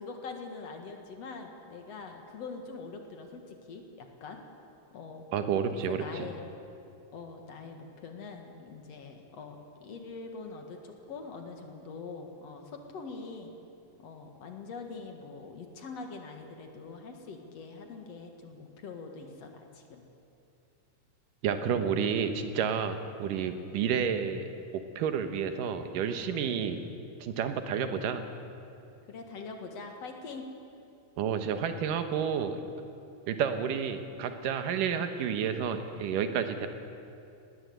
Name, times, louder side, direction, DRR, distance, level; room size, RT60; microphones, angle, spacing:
voice 1, 0.0-4.5 4.9-5.2 5.7-6.4 7.1-13.5 14.0-20.0 21.7-21.9 23.8-24.1 26.7-27.0 29.1-30.5, left 4 dB, 55° left, 4 dB, 2.6 m, -44 dB
voice 2, 5.3-6.3 21.4-24.5 25.0-26.8 27.2-28.2 31.2-32.6 33.3-36.7, right 7 dB, 85° right, 8 dB, 2.8 m, -30 dB
19.5 x 19.0 x 8.0 m, 2.6 s
omnidirectional pair, 3.7 m